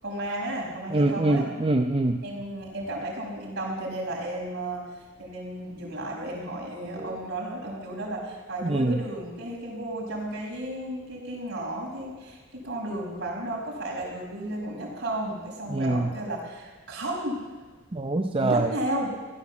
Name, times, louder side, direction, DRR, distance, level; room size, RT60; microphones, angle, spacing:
voice 1, 0.0-1.4 2.2-4.9 5.2-17.5 18.4-19.4, right 1 dB, 55° right, -3 dB, 5.5 m, -33 dB
voice 2, 0.9-2.2 7.0-7.2 8.6-9.0 15.7-16.1 17.9-18.7, right 2 dB, 25° right, 3 dB, 0.6 m, -24 dB
16.0 x 12.5 x 7.2 m, 1.3 s
head